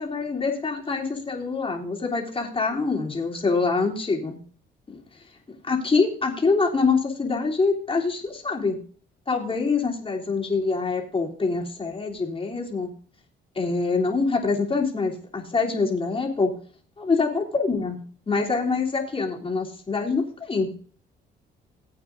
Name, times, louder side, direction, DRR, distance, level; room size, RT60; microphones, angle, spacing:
voice 1, 0.0-4.4 4.9-5.0 5.6-8.8 9.3-12.9 13.5-16.5 17.0-18.0 18.3-20.7, left 4 dB, 25° left, -1 dB, 3.2 m, -25 dB
18.5 x 8.6 x 2.6 m, 0.43 s
cardioid pair, 90°, 20 cm